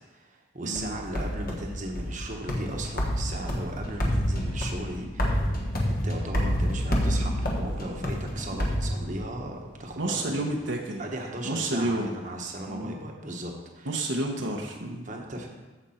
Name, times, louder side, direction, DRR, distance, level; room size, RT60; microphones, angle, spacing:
voice 1, 0.1-5.5 5.8-10.4 11.0-14.0 15.0-15.5, right 1 dB, 40° right, 1 dB, 1.2 m, -37 dB
voice 2, 0.6-1.0 10.0-11.1 11.4-12.1 12.7-13.0 13.9-15.1, right 1 dB, 65° right, 0 dB, 0.9 m, -30 dB
sound 1, 0.7-9.5, equal, 45° left, 1.4 m, -29 dB
14.0 x 5.2 x 4.4 m, 1.2 s
head